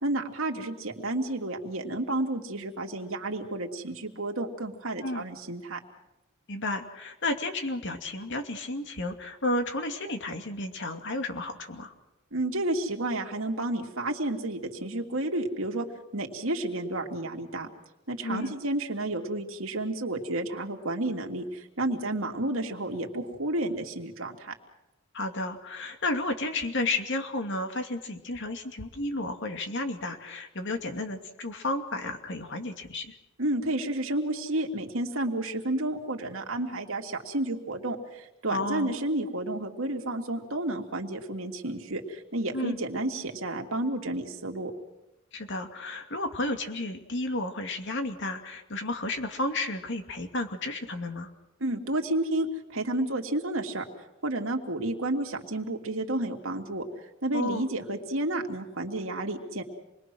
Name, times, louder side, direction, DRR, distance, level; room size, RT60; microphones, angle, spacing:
voice 1, 0.0-5.8 12.3-15.9 16.1-17.7 18.1-24.5 33.4-44.7 51.6-53.8 54.2-56.9 57.2-59.6, right 1 dB, 75° right, 2 dB, 2.7 m, -31 dB
voice 2, 6.5-11.9 18.2-18.6 25.1-33.1 38.5-38.9 42.5-42.8 45.3-51.3 57.3-57.7, left 2 dB, 60° left, 5 dB, 2.6 m, -32 dB
28.0 x 21.5 x 6.3 m, 0.96 s
head